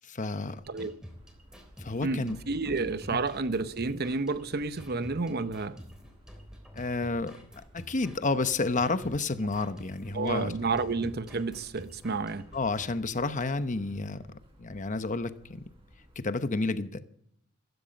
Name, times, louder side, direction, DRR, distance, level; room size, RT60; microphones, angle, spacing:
voice 1, 0.0-0.9 1.8-2.4 3.1-3.2 6.7-7.4 7.7-10.5 10.8-10.9 12.5-14.3 14.6-15.6 16.2-17.0, left 3 dB, 40° left, 0.9 m, -30 dB
sound 1, 0.6-13.0, equal, 5° right, 3.6 m, -50 dB
sound 2, 1.1-16.2, equal, 25° right, 7.4 m, -58 dB
voice 2, 2.0-5.8 10.1-12.5, right 3 dB, 50° right, 0.9 m, -30 dB
15.0 x 15.0 x 5.2 m
head